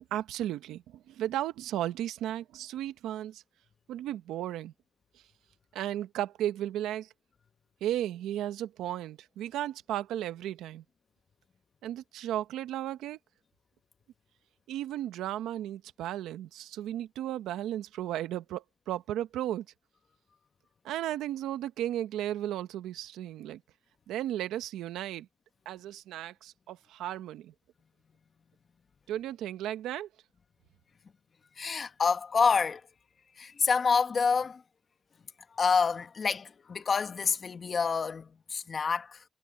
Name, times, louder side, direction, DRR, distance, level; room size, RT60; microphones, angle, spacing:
voice 1, 0.1-3.4 3.9-4.7 5.7-7.1 7.8-10.8 11.8-13.2 14.7-19.7 20.8-23.6 24.1-25.3 25.6-27.5 29.1-30.1, right 12 dB, 85° right, 1.1 m, -35 dB
voice 2, 31.6-32.8 33.3-34.6 35.5-39.2, left 5 dB, 40° left, 1.7 m, -27 dB
cardioid pair, 90°, 0 cm